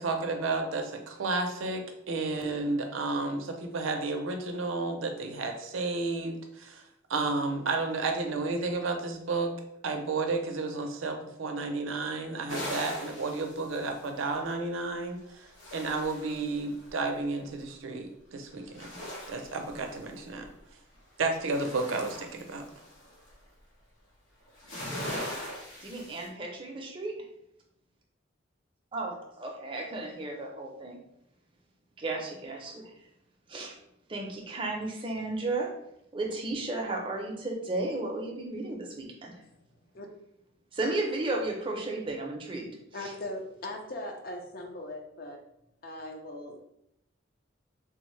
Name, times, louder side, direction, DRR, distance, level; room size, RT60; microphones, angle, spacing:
voice 1, 0.0-6.8 7.1-9.5 9.8-18.9 19.3-20.5 21.2-22.6, right 3 dB, 85° right, 4 dB, 0.5 m, -32 dB
sound 1, 12.5-14.5 15.2-16.9 18.6-20.5 20.9-23.3 24.5-26.3, equal, 90° left, 1.2 m, -40 dB
voice 2, 25.8-27.1 28.9-31.0 32.0-32.9 33.5-33.8 34.1-35.7 36.1-39.3 40.7-42.7 43.0-43.1, right 2 dB, 25° right, 0 dB, 0.5 m, -34 dB
voice 3, 42.9-45.4 45.8-46.7, left 1 dB, 50° left, 2 dB, 0.5 m, -39 dB
3.4 x 2.0 x 3.1 m, 0.79 s
head